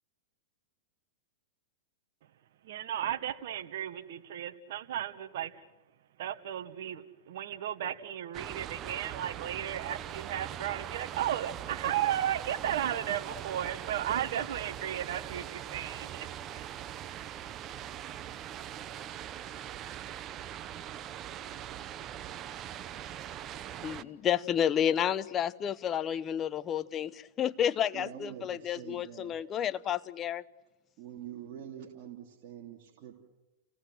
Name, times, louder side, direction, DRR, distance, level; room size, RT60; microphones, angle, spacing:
voice 1, 2.6-5.5 6.2-16.7, right 11 dB, 65° right, 8 dB, 1.4 m, -34 dB
sound 1, 8.3-24.0, right 11 dB, 30° right, 0.8 m, -41 dB
voice 2, 23.8-30.4, left 9 dB, 25° left, 15 dB, 0.7 m, -30 dB
voice 3, 27.9-29.7 31.0-33.1, right 10 dB, 45° right, 0 dB, 3.1 m, -46 dB
30.0 x 17.5 x 7.8 m, 1.1 s
hypercardioid pair, 130°, 0 cm